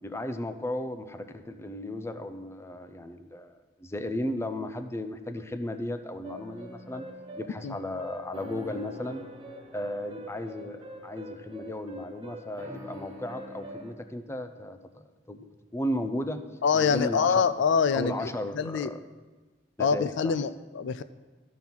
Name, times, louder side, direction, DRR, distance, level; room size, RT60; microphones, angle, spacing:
voice 1, 0.0-7.0 7.4-9.2 9.7-16.4 16.7-17.5 17.9-19.0 19.8-20.4, left 1 dB, 15° left, 8 dB, 0.5 m, -35 dB
sound 1, 6.2-13.9, equal, 25° right, 1.4 m, -44 dB
voice 2, 16.6-18.3 18.5-18.9 19.8-21.0, left 6 dB, 65° left, 12 dB, 0.4 m, -25 dB
13.0 x 5.5 x 6.0 m, 1.3 s
head